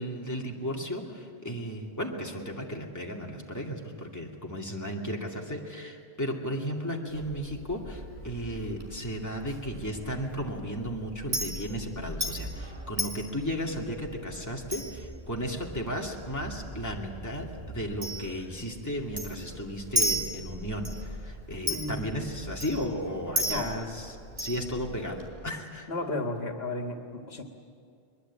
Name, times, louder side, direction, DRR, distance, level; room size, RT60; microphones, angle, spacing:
voice 1, 0.0-25.9, equal, 15° left, -1 dB, 2.5 m, -35 dB
Chink clink, 7.1-25.3, equal, 80° right, 4.6 m, -37 dB
voice 2, 21.7-22.1 23.5-23.8 25.9-27.4, left 2 dB, 75° left, 4 dB, 1.9 m, -33 dB
22.0 x 22.0 x 8.6 m, 2.3 s
omnidirectional pair, 1.0 m